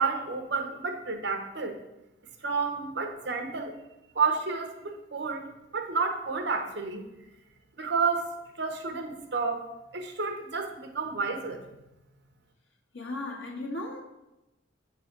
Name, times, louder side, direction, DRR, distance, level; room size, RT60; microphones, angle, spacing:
voice 1, 0.0-1.8 2.4-3.7 4.1-5.5 5.7-7.0 7.8-8.3 8.6-9.6 9.9-11.6, right 4 dB, 65° right, 4 dB, 1.1 m, -30 dB
voice 2, 12.9-14.0, left 2 dB, 85° left, -1 dB, 1.7 m, -36 dB
8.0 x 4.0 x 6.0 m, 0.95 s
head